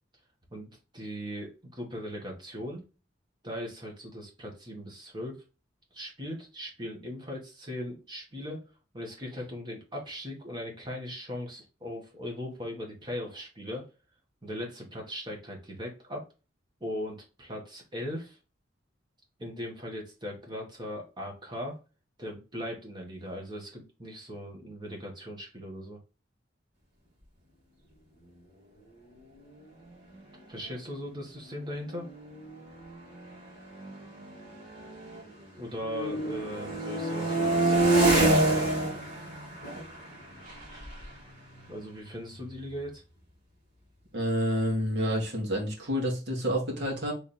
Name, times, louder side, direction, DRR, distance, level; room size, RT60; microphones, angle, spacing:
voice 1, 0.5-2.8 3.4-5.4 5.9-8.6 8.9-13.8 14.4-16.2 16.8-18.4 19.4-21.8 22.2-26.0 30.5-32.1 35.6-38.7 41.7-43.0, equal, 25° right, 0 dB, 1.5 m, -39 dB
sound 1, 30.0-30.1 30.4-30.7 31.5-35.4 35.8-42.4, right 2 dB, 45° right, 2.4 m, -29 dB
voice 2, 44.1-47.1, equal, 65° right, -1 dB, 1.8 m, -29 dB
3.6 x 3.4 x 4.2 m, 0.31 s
head